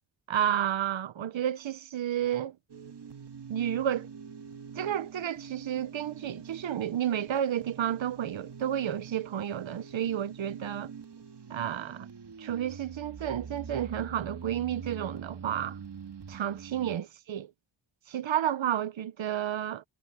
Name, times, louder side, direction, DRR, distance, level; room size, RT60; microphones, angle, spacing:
voice 1, 0.3-2.5 3.5-4.1 4.8-10.9 11.5-12.1 12.4-15.8 16.3-17.4 18.1-19.8, right 10 dB, 85° right, 0.8 m, -31 dB
sound 1, 2.7-17.0, right 6 dB, 60° right, 1.9 m, -45 dB
wide cardioid pair, 75°, 45 cm